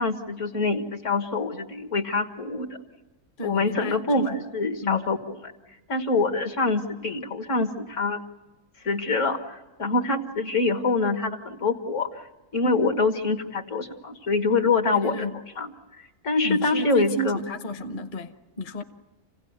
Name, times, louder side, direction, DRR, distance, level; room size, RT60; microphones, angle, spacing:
voice 1, 0.0-2.8 3.4-5.4 5.9-8.2 8.8-12.1 12.5-15.3 15.6-15.7 16.2-17.4, left 3 dB, 65° left, 1.9 m, -25 dB
voice 2, 3.4-4.0 4.3-4.4 4.8-5.1 15.0-15.4 16.4-18.8, equal, 40° left, 1.0 m, -32 dB
28.0 x 17.0 x 9.4 m
omnidirectional pair, 1.4 m